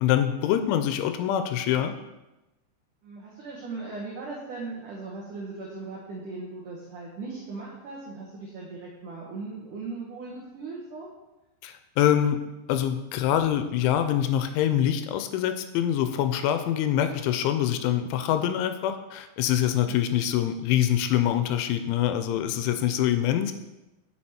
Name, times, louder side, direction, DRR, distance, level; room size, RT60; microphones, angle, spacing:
voice 1, 0.0-1.9 11.6-12.4 12.7-23.5, left 10 dB, 85° left, 9 dB, 2.9 m, -25 dB
voice 2, 3.0-11.1 17.6-17.8 19.7-20.0, right 3 dB, 85° right, -4 dB, 1.8 m, -38 dB
7.6 x 6.2 x 4.3 m, 1.0 s
omnidirectional pair, 5.6 m